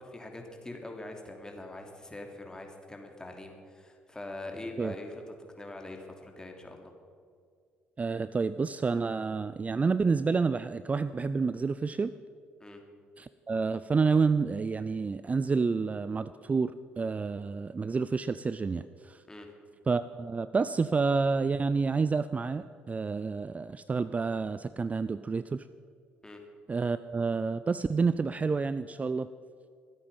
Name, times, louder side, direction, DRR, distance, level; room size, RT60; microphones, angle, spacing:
voice 1, 0.0-6.9 12.6-12.8 19.3-19.5 26.2-26.4, left 2 dB, 15° left, 2 dB, 3.1 m, -43 dB
voice 2, 8.0-12.1 13.2-19.2 19.9-25.6 26.7-29.3, right 4 dB, 25° right, 14 dB, 0.4 m, -29 dB
24.0 x 8.7 x 5.6 m, 2.2 s
hypercardioid pair, 50°, 5 cm